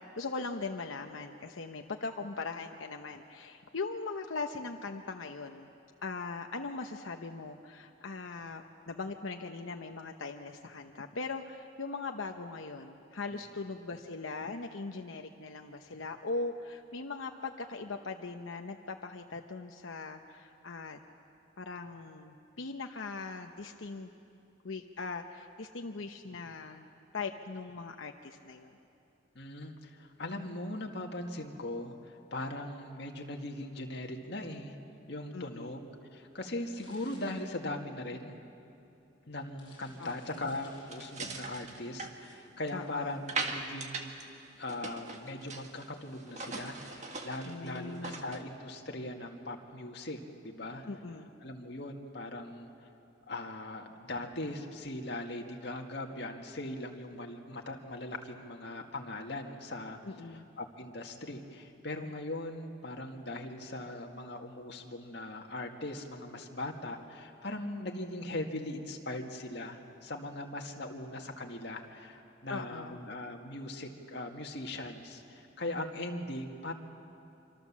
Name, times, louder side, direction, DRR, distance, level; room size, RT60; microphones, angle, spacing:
voice 1, 0.1-5.7 6.0-21.0 21.6-24.1 24.6-26.9 27.1-28.8 35.3-35.7 40.0-40.4 42.7-43.2 47.4-48.3 50.8-51.3 60.1-60.4 72.5-73.0, left 3 dB, 90° left, 4 dB, 0.9 m, -40 dB
voice 2, 29.4-34.7 35.1-38.4 39.3-44.1 44.6-50.9 51.4-52.7 53.3-60.0 60.3-76.7, left 1 dB, 60° left, 2 dB, 2.0 m, -40 dB
sound 1, 36.7-38.1 38.8-38.9 39.3-41.4, left 2 dB, 25° left, 7.9 m, -58 dB
sound 2, 40.9-42.8 43.3-44.2 44.5-45.9 46.2-48.4, right 3 dB, 35° right, 1.7 m, -40 dB
26.0 x 25.5 x 7.4 m, 2.7 s
head